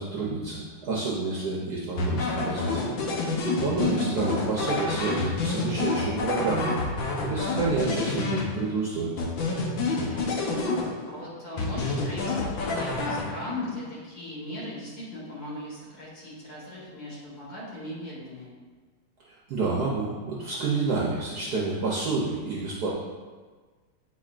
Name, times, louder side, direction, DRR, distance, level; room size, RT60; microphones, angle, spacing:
voice 1, 0.0-2.8 3.6-6.8 7.2-9.1 19.5-22.9, right 3 dB, 60° right, -4 dB, 1.1 m, -29 dB
sound 1, 2.0-8.8 9.2-11.2 11.6-13.6, left 3 dB, 70° left, 1.5 m, -28 dB
voice 2, 3.0-3.4 9.9-18.5, left 1 dB, 45° left, -6 dB, 2.0 m, -39 dB
8.5 x 4.5 x 2.4 m, 1.4 s
omnidirectional pair, 2.4 m